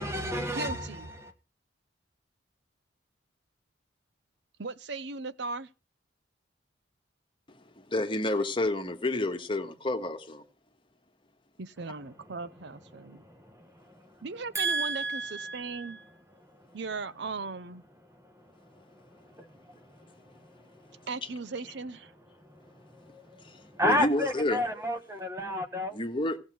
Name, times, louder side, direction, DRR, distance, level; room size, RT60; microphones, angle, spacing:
voice 1, 0.0-1.3 12.9-14.2 14.5-16.1 16.4-16.8 18.1-21.1 22.4-26.0, equal, 15° right, 1.4 m, -34 dB
voice 2, 0.5-1.1 4.6-5.7 11.6-13.2 14.2-16.0 16.7-17.8 21.1-22.1, right 3 dB, 65° right, 0.7 m, -38 dB
voice 3, 7.8-10.4 23.4-24.6 25.9-26.4, left 1 dB, 25° left, 1.5 m, -30 dB
16.0 x 7.4 x 6.3 m
head